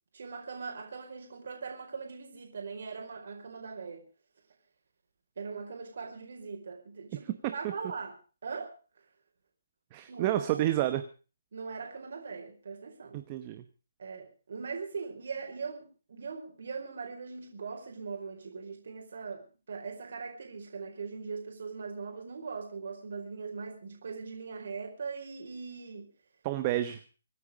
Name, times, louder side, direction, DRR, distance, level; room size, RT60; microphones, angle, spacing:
voice 1, 0.1-4.0 5.4-8.1 8.4-8.7 10.1-10.5 11.5-13.2 14.0-26.1, right 5 dB, 55° right, 2 dB, 4.8 m, -40 dB
voice 2, 9.9-11.0 13.1-13.6 26.4-27.0, right 14 dB, 20° right, 10 dB, 0.9 m, -30 dB
25.5 x 9.3 x 5.0 m, 0.37 s
hypercardioid pair, 170°, 0 cm